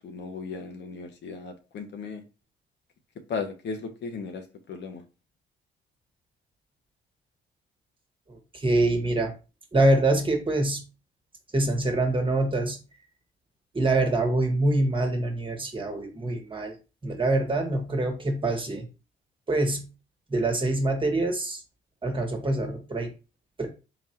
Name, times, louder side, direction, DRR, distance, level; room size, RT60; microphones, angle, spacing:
voice 1, 0.0-2.2 3.3-5.0, left 4 dB, 65° left, 5 dB, 0.9 m, -36 dB
voice 2, 8.3-9.3 9.7-10.8 11.5-12.8 13.7-16.7 17.0-18.9 19.5-19.9 20.3-21.6 22.0-23.1 23.6-23.7, right 2 dB, 25° right, 3 dB, 1.2 m, -25 dB
4.0 x 2.4 x 4.2 m, 0.31 s
cardioid pair, 90°, 20 cm